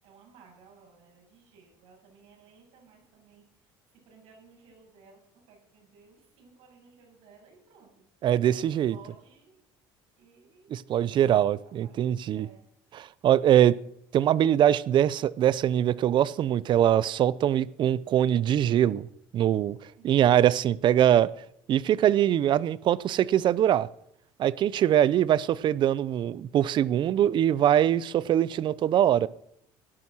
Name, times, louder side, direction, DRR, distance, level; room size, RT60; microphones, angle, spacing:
voice 1, 0.0-8.1 8.5-9.6 10.2-10.7 11.6-12.6 20.0-20.3, right 5 dB, 75° right, 7.7 m, -57 dB
voice 2, 8.2-9.0 10.7-12.5 12.9-13.8 14.1-19.1 19.3-19.8 20.0-21.3 21.7-23.9 24.4-29.3, right 11 dB, 50° right, 0.7 m, -23 dB
17.0 x 11.0 x 6.3 m
supercardioid pair, 105°, 10 cm